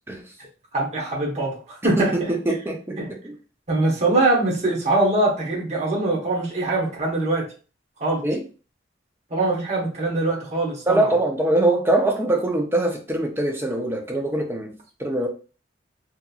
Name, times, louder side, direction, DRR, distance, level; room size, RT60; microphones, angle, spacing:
voice 1, 0.7-2.1 3.0-3.1 3.7-7.5 8.0-8.2 9.3-11.1, right 2 dB, 40° right, -2 dB, 0.9 m, -22 dB
voice 2, 2.0-3.3 8.2-8.4 10.9-15.3, right 2 dB, 15° right, 2 dB, 0.5 m, -23 dB
2.8 x 2.5 x 2.3 m, 0.36 s
head